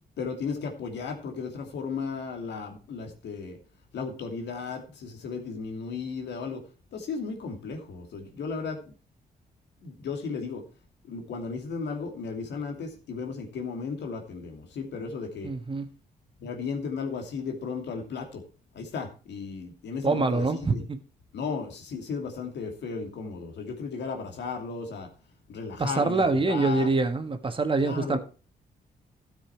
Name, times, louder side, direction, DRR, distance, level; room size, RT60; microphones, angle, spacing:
voice 1, 0.2-3.6 3.9-6.6 6.9-8.9 9.8-10.6 11.1-15.5 16.4-18.4 18.7-20.8 21.3-25.1 25.5-26.9 27.8-28.2, left 5 dB, 85° left, 2.6 m, -35 dB
voice 2, 15.4-15.9 20.0-21.0 25.8-28.2, right 3 dB, 30° right, 1.5 m, -25 dB
13.0 x 7.0 x 4.5 m
cardioid pair, 100°, 17 cm